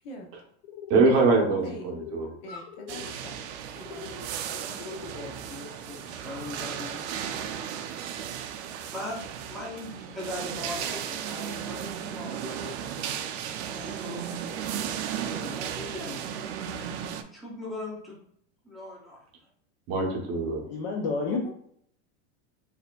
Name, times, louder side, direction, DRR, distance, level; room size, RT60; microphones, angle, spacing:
sound 1, 0.6-1.1 1.9-2.4 2.6-3.1 3.8-4.3 4.8-5.3, left 6 dB, 85° left, 0.6 m, -43 dB
voice 1, 0.9-2.3 19.9-20.6, right 3 dB, 40° right, 1 dB, 0.7 m, -23 dB
voice 2, 1.6-1.9 2.2-3.4 3.7-4.0 21.3-21.5, left 1 dB, 55° left, 2 dB, 0.8 m, -42 dB
sound 2, 2.9-17.2, right 9 dB, 70° right, 0.5 m, -35 dB
voice 3, 4.4-7.4 8.9-9.2 9.4-12.7 13.7-16.4 17.3-18.2 18.6-19.2, left 1 dB, ahead, -5 dB, 0.6 m, -40 dB
voice 4, 20.7-21.5, left 4 dB, 40° left, 0 dB, 0.4 m, -29 dB
4.1 x 2.7 x 2.3 m, 0.65 s
supercardioid pair, 165°, 34 cm